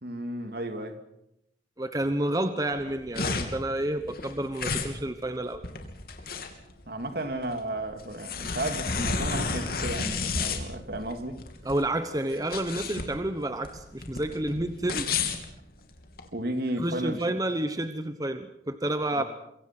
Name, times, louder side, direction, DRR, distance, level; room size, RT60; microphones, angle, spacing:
voice 1, 0.0-1.0 6.9-11.4 16.3-17.2 19.1-19.2, right 1 dB, 55° right, 2.6 m, -33 dB
voice 2, 1.8-5.6 11.6-15.1 16.8-19.2, right 1 dB, 20° right, 1.0 m, -30 dB
sound 1, 2.7-16.3, left 4 dB, 55° left, 3.2 m, -32 dB
26.0 x 23.5 x 6.1 m
head